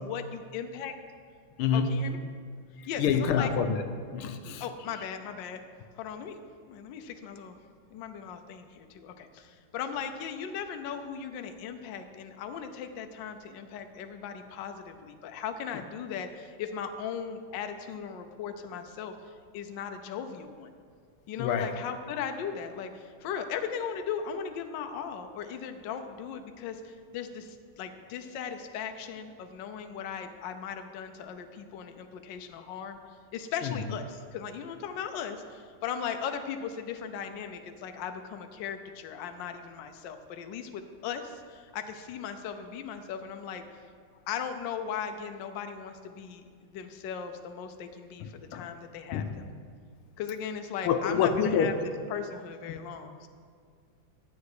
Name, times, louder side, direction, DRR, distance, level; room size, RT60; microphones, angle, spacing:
voice 1, 0.0-0.9 1.7-2.2 2.9-3.5 4.6-5.6 5.9-6.4 6.7-7.6 7.9-20.7 21.3-33.0 33.3-43.6 44.3-49.4 50.2-51.7 52.1-53.3, left 7 dB, 70° left, 7 dB, 1.3 m, -38 dB
voice 2, 1.6-1.9 3.0-3.8 4.1-4.6 21.4-21.7 33.6-33.7 48.2-48.6 49.1-49.3 50.9-51.7 52.7-52.8, left 7 dB, 85° left, 8 dB, 1.6 m, -27 dB
11.5 x 8.0 x 4.8 m, 2.1 s
omnidirectional pair, 2.3 m